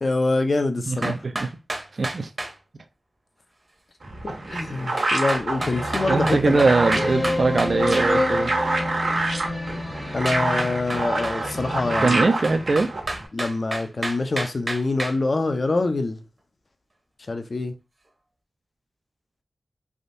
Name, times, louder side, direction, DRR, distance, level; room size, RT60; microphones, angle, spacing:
voice 1, 0.0-1.1 4.2-7.6 10.1-12.2 13.3-16.2 17.3-17.8, left 2 dB, 50° left, 0.6 m, -25 dB
voice 2, 0.9-1.5 1.9-2.3 6.1-8.5 12.0-12.9, right 3 dB, 55° right, 0.4 m, -21 dB
sound 1, 1.0-2.5 5.0-8.1 10.3-11.4 12.4-15.2, right 2 dB, 35° right, 0.8 m, -30 dB
sound 2, 4.0-13.3, right 2 dB, 80° right, 1.3 m, -27 dB
sound 3, 5.6-13.1, left 2 dB, 15° left, 0.8 m, -29 dB
3.5 x 2.7 x 2.6 m
wide cardioid pair, 85°, 0 cm